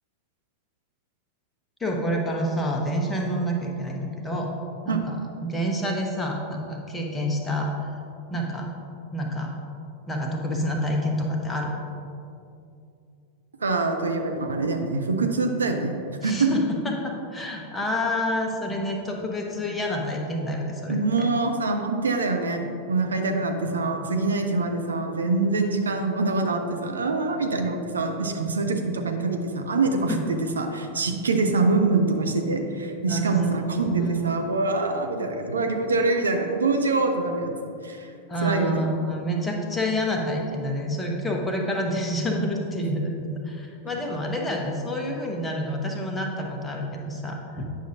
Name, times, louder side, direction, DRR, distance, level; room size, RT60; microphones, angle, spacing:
voice 1, 1.8-4.5 4.8-7.7 8.3-8.7 9.1-9.5 10.1-11.8 16.2-21.0 30.1-30.2 33.1-33.5 33.9-34.4 38.3-47.7, equal, 10° left, 0 dB, 1.0 m, -28 dB
voice 2, 13.6-16.5 20.9-30.1 30.5-37.5 37.8-38.1 38.4-38.9, right 3 dB, 70° right, 4 dB, 0.5 m, -25 dB
9.2 x 6.3 x 2.7 m, 2.5 s
figure-of-eight pair, 90°, 0 cm